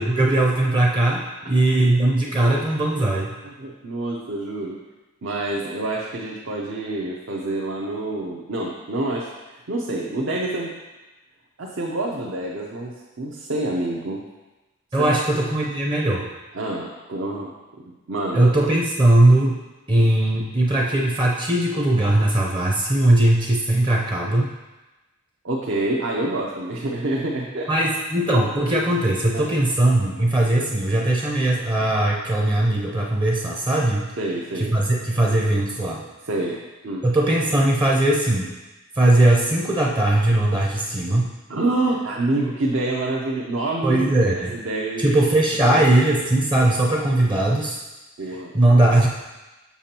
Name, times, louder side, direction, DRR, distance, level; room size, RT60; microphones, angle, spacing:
voice 1, 0.0-3.3 14.9-16.3 18.3-19.6 19.9-24.5 27.7-34.1 34.6-36.0 37.0-38.5 38.9-41.3 43.8-44.5 45.0-47.8 48.5-49.1, right 1 dB, 20° right, -2 dB, 0.6 m, -19 dB
voice 2, 3.6-4.8 5.2-9.3 9.7-10.7 11.6-14.2 15.0-15.2 16.5-18.5 20.0-20.1 25.4-27.7 29.3-29.5 30.2-30.3 34.2-34.7 36.3-37.0 41.5-45.2 45.6-46.1 47.3-47.4 48.2-48.5, right 2 dB, 60° right, -3 dB, 0.7 m, -27 dB
7.0 x 5.9 x 2.9 m, 1.1 s
head